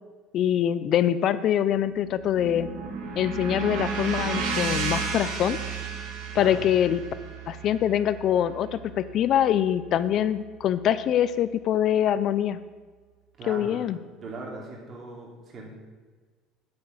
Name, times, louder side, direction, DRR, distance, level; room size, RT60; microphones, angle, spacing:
voice 1, 0.3-2.7 3.2-5.6 6.3-7.0 7.5-12.6 13.5-14.0, left 10 dB, 50° left, 14 dB, 0.4 m, -24 dB
sound 1, 1.7-10.0, right 5 dB, 70° right, 1.8 m, -33 dB
voice 2, 13.4-13.8 14.1-15.7, right 3 dB, 35° right, 0 dB, 3.0 m, -39 dB
9.6 x 6.0 x 7.8 m, 1.4 s
cardioid pair, 130°, 0 cm